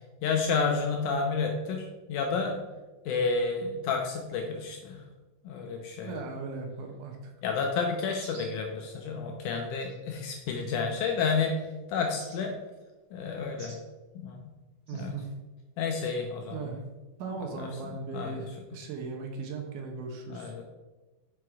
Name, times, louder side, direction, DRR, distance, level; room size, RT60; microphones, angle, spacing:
voice 1, 0.2-2.6 3.1-5.0 5.5-6.2 7.4-11.6 11.9-12.6 13.1-13.8 14.2-14.4 14.9-15.1 15.8-16.6 17.6-17.7 18.1-18.4 20.3-20.6, left 5 dB, 80° left, 2 dB, 1.9 m, -30 dB
voice 2, 6.0-7.3 14.9-15.3 16.0-16.1 16.5-16.8 17.2-20.5, right 4 dB, 75° right, 2 dB, 2.2 m, -38 dB
sound 1, 8.2-8.6 9.8-10.0 10.6-11.1 12.2-12.4 13.6-13.8 14.9-15.1, right 2 dB, 35° right, 1.4 m, -50 dB
6.1 x 4.6 x 4.7 m, 1.2 s
omnidirectional pair, 4.0 m